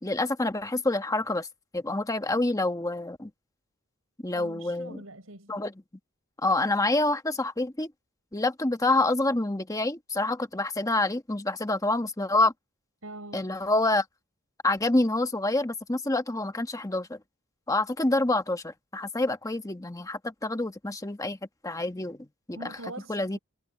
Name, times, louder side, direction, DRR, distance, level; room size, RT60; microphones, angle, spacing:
voice 1, 0.0-1.5 1.7-3.3 4.2-5.0 5.5-5.7 6.4-7.9 8.3-12.5 13.3-14.0 14.6-17.2 17.7-21.4 21.6-22.7 23.1-23.4, left 2 dB, 15° left, 1.2 m, -27 dB
voice 2, 4.3-5.5 13.0-13.5 22.5-23.4, right 2 dB, 90° right, 6.2 m, -43 dB
head